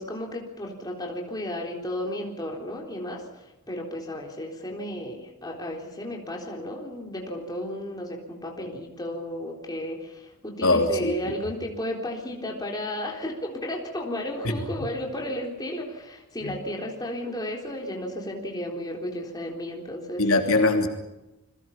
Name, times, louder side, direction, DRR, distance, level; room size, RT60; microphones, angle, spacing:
voice 1, 0.0-20.2, left 1 dB, 15° left, 0 dB, 3.9 m, -33 dB
voice 2, 10.6-11.1 14.4-14.5 16.4-16.6 20.2-20.9, left 2 dB, 70° left, 3 dB, 3.0 m, -22 dB
29.5 x 22.0 x 5.9 m, 0.97 s
head